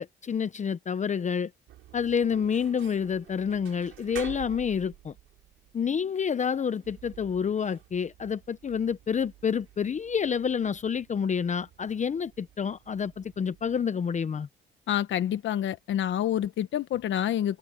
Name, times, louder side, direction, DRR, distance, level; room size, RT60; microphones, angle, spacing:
voice 1, 0.0-1.5 1.9-5.1 5.7-14.5, left 7 dB, 35° left, 0.8 m, -28 dB
sound 1, 1.7-13.9, right 14 dB, 90° right, 6.5 m, -50 dB
voice 2, 14.9-17.6, left 11 dB, 70° left, 1.2 m, -28 dB
cardioid pair, 90°, 20 cm